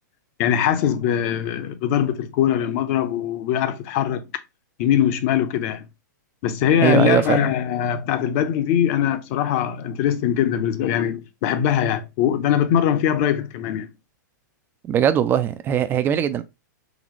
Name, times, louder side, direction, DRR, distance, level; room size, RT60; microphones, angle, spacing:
voice 1, 0.4-4.2 4.8-5.9 6.4-13.9, left 10 dB, 45° left, 0.7 m, -21 dB
voice 2, 6.8-7.5 14.8-16.4, right 9 dB, 20° right, 0.3 m, -20 dB
3.9 x 3.1 x 3.0 m
hypercardioid pair, 135°, 10 cm